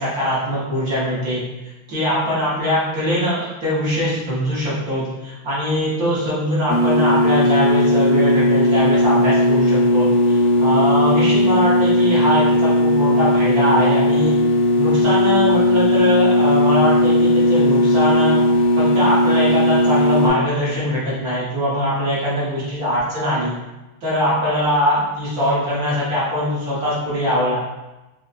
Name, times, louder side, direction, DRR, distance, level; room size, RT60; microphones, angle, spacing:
voice 1, 0.0-1.4 1.9-14.4 14.8-18.4 18.8-23.5 24.0-27.6, equal, 55° right, -9 dB, 1.2 m, -22 dB
sound 1, 6.7-20.3, left 1 dB, 80° left, 1.3 m, -16 dB
5.1 x 2.1 x 2.4 m, 1.0 s
omnidirectional pair, 2.3 m